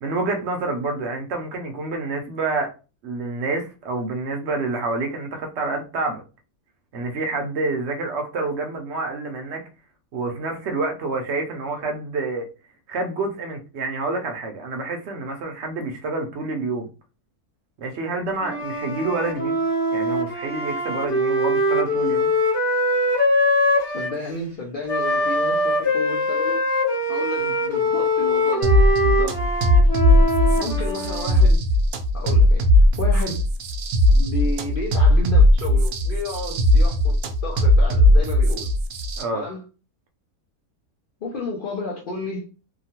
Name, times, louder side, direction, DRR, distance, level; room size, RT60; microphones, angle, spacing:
voice 1, 0.0-2.7 3.0-6.2 6.9-9.6 10.1-12.5 12.9-16.9 17.8-19.6 19.9-22.3 39.2-39.4, right 3 dB, 60° right, 0.7 m, -28 dB
Wind instrument woodwind instrument, 18.4-24.2 24.9-31.4, left 1 dB, 25° left, 0.6 m, -22 dB
voice 2, 23.9-26.6 27.1-29.4 30.6-31.7 32.1-33.4 34.1-38.7 39.3-39.6 41.2-42.5, left 3 dB, 80° left, 0.4 m, -32 dB
sound 1, 28.6-39.2, left 1 dB, 85° right, 1.1 m, -18 dB
2.9 x 2.2 x 2.8 m
omnidirectional pair, 1.6 m